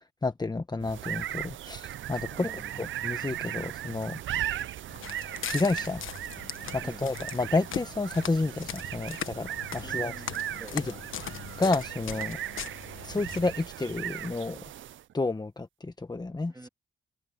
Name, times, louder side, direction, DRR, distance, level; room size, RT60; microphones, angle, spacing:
voice 1, 0.2-2.5 2.8-4.2 5.5-6.0 6.7-10.1 10.7-10.8 11.6-12.4 13.0-14.6 15.1-16.5, left 3 dB, 20° left, 1.0 m, -30 dB
sound 1, 0.8-15.1, right 12 dB, 75° right, 0.5 m, -37 dB
voice 2, 2.3-2.9 6.8-7.0 9.8-11.0 16.5-16.7, right 2 dB, 15° right, 2.5 m, -48 dB
Walk footsteps, 4.9-13.6, left 9 dB, 85° left, 1.3 m, -40 dB
cardioid pair, 85°, 20 cm